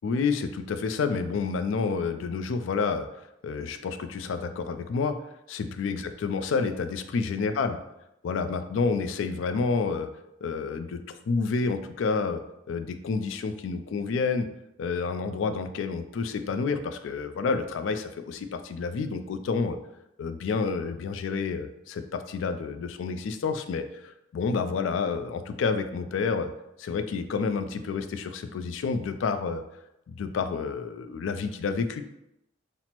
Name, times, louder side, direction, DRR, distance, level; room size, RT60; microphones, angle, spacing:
voice 1, 0.0-3.1 3.4-5.2 5.5-7.8 8.2-10.1 10.4-12.4 12.7-14.5 14.8-19.8 20.2-26.5 26.8-29.6 30.1-32.0, left 4 dB, 85° left, 9 dB, 0.3 m, -29 dB
5.8 x 2.0 x 2.9 m, 0.86 s
head